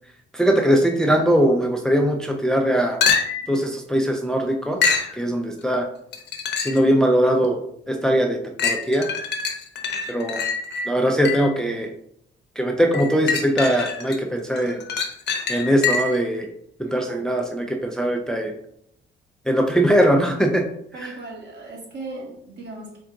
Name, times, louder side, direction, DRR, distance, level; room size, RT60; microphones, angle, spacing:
voice 1, 0.3-3.0 3.5-5.9 6.6-7.6 7.9-9.1 10.1-10.4 10.9-11.9 12.6-14.8 15.5-16.5 16.8-18.5 19.5-20.6 21.0-21.1, equal, 5° left, 2 dB, 0.4 m, -21 dB
sound 1, 3.0-3.6 4.8-5.1 6.1-6.9 7.4-7.5 8.6-11.6 12.9-14.2 14.6-16.3 20.0-20.1, left 5 dB, 60° left, 0.7 m, -25 dB
voice 2, 9.8-10.3 16.8-17.2 20.9-23.0, right 2 dB, 60° right, -2 dB, 1.4 m, -38 dB
3.8 x 2.4 x 3.5 m, 0.72 s
cardioid pair, 90°, 20 cm